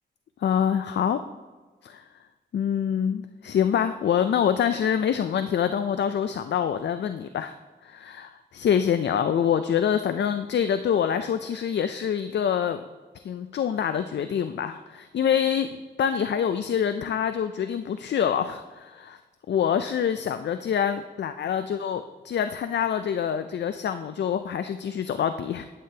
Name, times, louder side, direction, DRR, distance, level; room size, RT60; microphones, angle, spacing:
voice 1, 0.4-1.2 1.8-2.1 2.5-7.5 7.8-12.8 13.2-19.2 19.5-25.7, left 8 dB, 75° left, 10 dB, 0.4 m, -26 dB
11.0 x 8.7 x 2.8 m, 1.3 s
wide cardioid pair, 85°, 18 cm